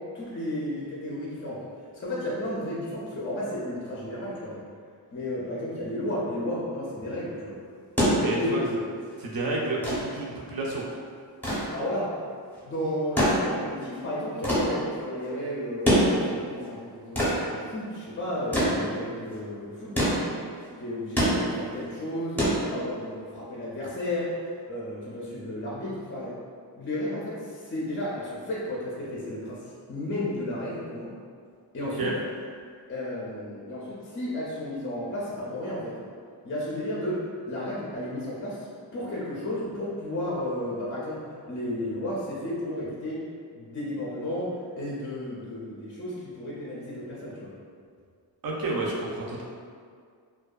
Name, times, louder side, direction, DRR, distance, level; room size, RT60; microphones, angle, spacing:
voice 1, 0.1-1.6 1.9-4.6 5.1-7.6 8.1-8.8 11.7-12.1 12.6-20.2 20.8-24.3 24.6-26.3 26.8-29.6 29.9-31.1 31.7-32.1 32.9-36.0 36.4-38.7 38.9-41.2 41.5-43.2 43.6-47.5, left 1 dB, 30° left, -6 dB, 0.4 m, -33 dB
sound 1, 7.7-23.2 24.5-24.6, equal, 5° left, 0.7 m, -27 dB
voice 2, 8.0-8.6 9.2-10.9 32.0-32.1 48.4-49.4, right 2 dB, 60° right, -3 dB, 0.6 m, -30 dB
2.6 x 2.2 x 2.3 m, 2.1 s
wide cardioid pair, 120°, 40 cm